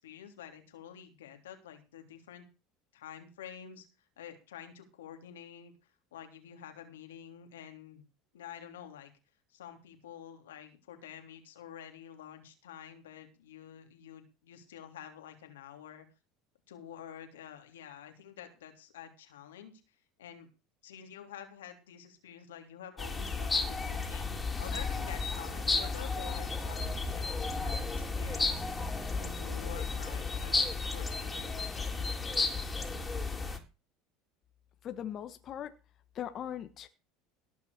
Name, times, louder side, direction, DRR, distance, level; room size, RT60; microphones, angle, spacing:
voice 1, 0.0-2.5 2.9-3.9 4.2-5.7 6.1-8.0 8.3-9.1 9.5-16.1 16.7-19.7 20.2-20.5 20.8-28.6 29.1-31.9, left 9 dB, 90° left, 5 dB, 3.3 m, -49 dB
sound 1, 23.0-33.6, left 3 dB, 15° left, 3.9 m, -33 dB
voice 2, 34.8-35.7 36.1-36.9, left 10 dB, 45° left, 9 dB, 1.5 m, -39 dB
18.0 x 6.1 x 6.8 m, 0.31 s
hypercardioid pair, 90°, 0 cm